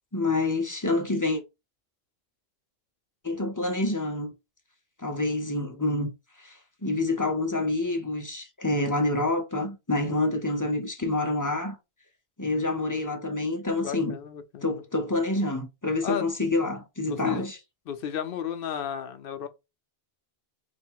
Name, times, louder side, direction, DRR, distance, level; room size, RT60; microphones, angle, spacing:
voice 1, 0.1-1.4 3.2-4.3 5.0-6.1 6.4-11.8 12.4-14.2 14.6-17.6, left 2 dB, 25° left, 0.6 m, -27 dB
voice 2, 13.8-14.8 16.0-16.2 17.1-17.5 17.9-19.5, left 9 dB, 65° left, 0.7 m, -33 dB
3.4 x 2.4 x 4.4 m
omnidirectional pair, 1.0 m